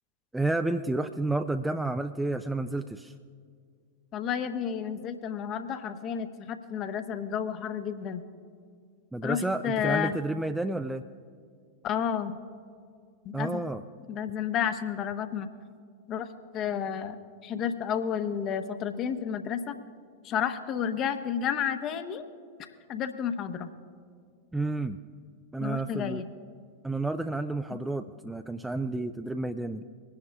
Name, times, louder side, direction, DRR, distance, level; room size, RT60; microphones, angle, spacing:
voice 1, 0.3-3.1 9.1-11.0 13.3-13.8 24.5-25.0 25.5-26.2 26.8-29.8, right 2 dB, 5° right, 8 dB, 0.4 m, -30 dB
voice 2, 4.1-8.2 9.2-10.1 11.8-12.4 13.2-13.6 14.1-15.5 16.1-16.3 16.5-17.2 17.4-19.8 20.2-22.2 22.9-23.7 25.6-26.3 27.7-27.8, left 8 dB, 35° left, 9 dB, 0.8 m, -31 dB
25.5 x 10.5 x 2.3 m, 2.1 s
figure-of-eight pair, 90°, 0 cm